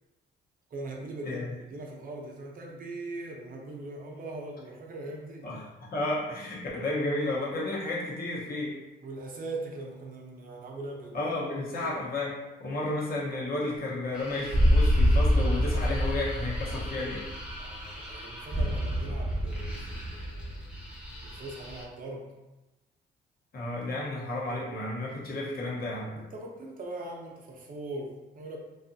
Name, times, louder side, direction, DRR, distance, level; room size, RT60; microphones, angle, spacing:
voice 1, 0.7-5.5 9.0-11.3 11.8-11.9 17.6-20.6 21.2-22.3 26.1-28.6, right 2 dB, 45° right, 0 dB, 0.7 m, -40 dB
voice 2, 5.9-8.8 11.1-17.2 23.5-26.2, left 2 dB, 50° left, -5 dB, 0.9 m, -32 dB
sound 1, 14.2-21.8, equal, 5° right, 0.8 m, -28 dB
2.6 x 2.4 x 2.6 m, 1.0 s
cardioid pair, 90°, 20 cm